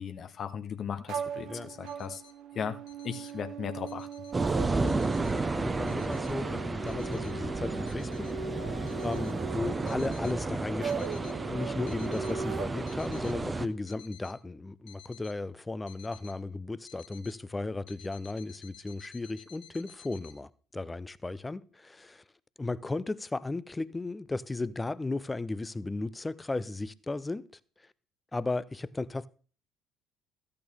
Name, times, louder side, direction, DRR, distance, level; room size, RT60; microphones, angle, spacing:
voice 1, 0.0-2.2 2.5-2.8 3.0-4.1, left 7 dB, 45° left, 0.8 m, -37 dB
sound 1, 1.1-13.4, right 5 dB, 55° right, 1.1 m, -40 dB
sound 2, 1.9-2.3 2.8-3.3 3.7-4.4 4.9-5.3 5.9-6.4 6.9-7.3 7.9-8.3 8.9-9.3 9.9-10.3 10.9-11.3 11.7-12.3 12.9-13.3 13.9-14.3 14.9-15.3 15.9-16.4 16.9-17.3 17.9-20.4, left 10 dB, 65° left, 1.1 m, -54 dB
sound 3, 4.3-13.7, right 3 dB, 20° right, 0.7 m, -32 dB
voice 2, 4.8-8.3 8.6-8.7 9.0-22.2 22.6-27.5 28.3-29.3, left 2 dB, 15° left, 0.5 m, -35 dB
13.5 x 8.5 x 3.5 m
figure-of-eight pair, 55°, 0 cm